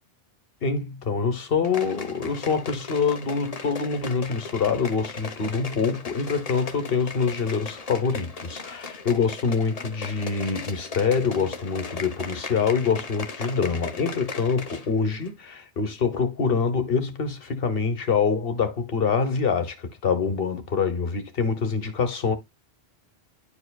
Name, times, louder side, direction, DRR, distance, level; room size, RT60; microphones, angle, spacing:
voice 1, 0.6-22.3, left 5 dB, 65° left, 1.4 m, -25 dB
sound 1, 1.6-14.9 15.2-15.3, left 4 dB, 40° left, 0.9 m, -37 dB
10.5 x 4.8 x 2.3 m
omnidirectional pair, 1.1 m